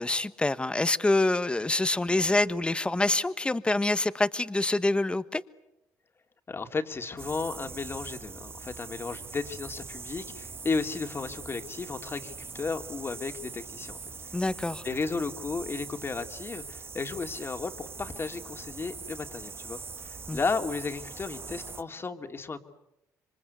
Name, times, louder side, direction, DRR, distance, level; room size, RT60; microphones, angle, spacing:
voice 1, 0.0-5.4 14.3-14.8 20.3-20.4, left 2 dB, 15° left, 1.2 m, -26 dB
voice 2, 6.5-14.0 14.2-14.3 14.8-22.6, left 4 dB, 35° left, 2.6 m, -34 dB
sound 1, 7.2-21.8, right 5 dB, 35° right, 1.2 m, -42 dB
27.0 x 25.0 x 8.3 m
supercardioid pair, 75°, 7 cm